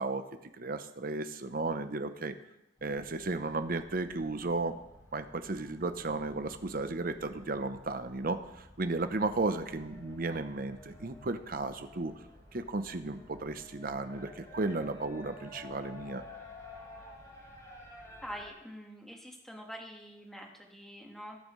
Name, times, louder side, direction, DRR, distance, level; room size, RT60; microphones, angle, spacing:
voice 1, 0.0-2.4 2.8-4.8 5.1-12.1 12.5-16.2, right 3 dB, 50° right, 9 dB, 0.8 m, -34 dB
sound 1, 2.8-18.5, left 1 dB, 20° left, 4.5 m, -52 dB
voice 2, 18.2-21.4, equal, ahead, 0 dB, 1.6 m, -45 dB
21.0 x 8.9 x 3.2 m, 0.90 s
head